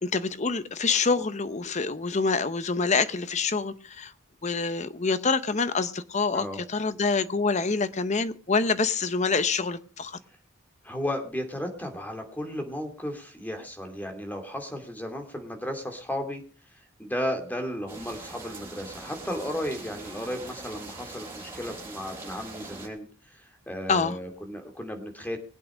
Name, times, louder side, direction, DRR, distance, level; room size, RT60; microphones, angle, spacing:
voice 1, 0.0-4.1 4.4-10.2 23.9-24.2, left 4 dB, 35° left, 0.8 m, -26 dB
voice 2, 10.8-16.4 17.0-25.4, equal, 10° left, 2.6 m, -34 dB
sound 1, 17.9-22.9, right 2 dB, 10° right, 6.5 m, -42 dB
21.0 x 8.6 x 5.0 m
head